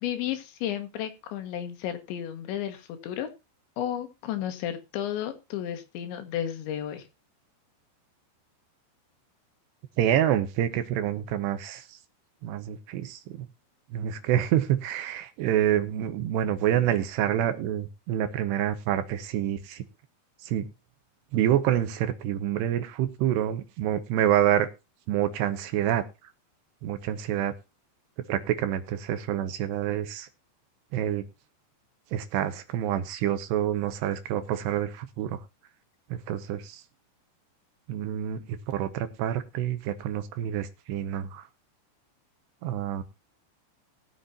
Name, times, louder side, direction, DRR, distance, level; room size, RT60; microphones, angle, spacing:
voice 1, 0.0-3.3 3.8-7.0, left 10 dB, 80° left, 7 dB, 3.7 m, -33 dB
voice 2, 10.0-11.8 12.4-13.5 13.9-19.8 20.4-20.7 21.3-24.7 25.1-26.0 26.8-27.5 28.3-30.3 30.9-31.2 32.1-35.4 36.1-36.8 37.9-41.4 42.6-43.0, right 11 dB, 75° right, 10 dB, 3.0 m, -27 dB
20.0 x 7.8 x 2.7 m, 0.27 s
omnidirectional pair, 5.2 m